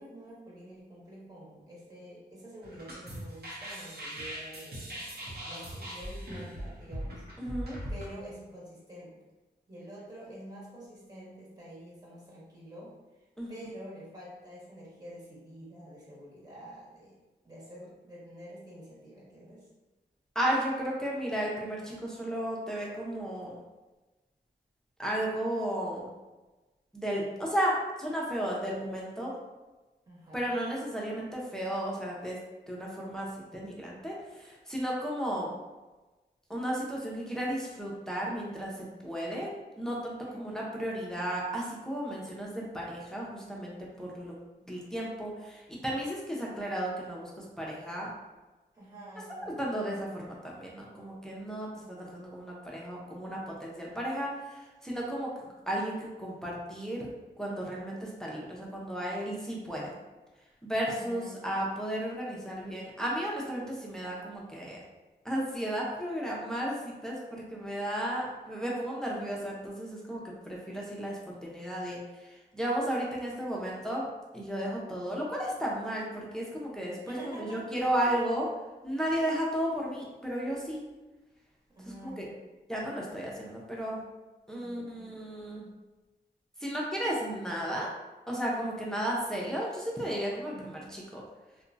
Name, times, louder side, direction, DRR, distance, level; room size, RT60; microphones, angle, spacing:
voice 1, 0.0-7.2 7.9-9.2 9.7-12.9 13.5-17.1 17.4-19.7 30.1-30.5 40.3-40.7 48.7-49.5 60.8-61.6 77.1-77.7 78.0-78.1 81.7-82.5 84.6-85.1 90.5-90.9, right 1 dB, 20° right, -7 dB, 1.3 m, -48 dB
sound 1, 2.6-8.1, equal, 60° right, 0.9 m, -40 dB
voice 2, 7.4-7.8 13.4-13.5 20.3-23.6 25.0-26.1 26.9-29.3 30.3-32.4 32.7-35.5 36.5-39.5 39.8-44.4 44.6-48.1 49.6-55.3 55.7-57.1 57.4-59.9 60.6-64.8 65.2-74.1 74.3-78.5 78.8-80.8 82.0-82.2 82.7-84.0 84.5-85.7 86.6-87.9 88.3-91.2, right 1 dB, 5° left, -4 dB, 0.7 m, -34 dB
2.8 x 2.3 x 2.6 m, 1.2 s
cardioid pair, 50°, 18 cm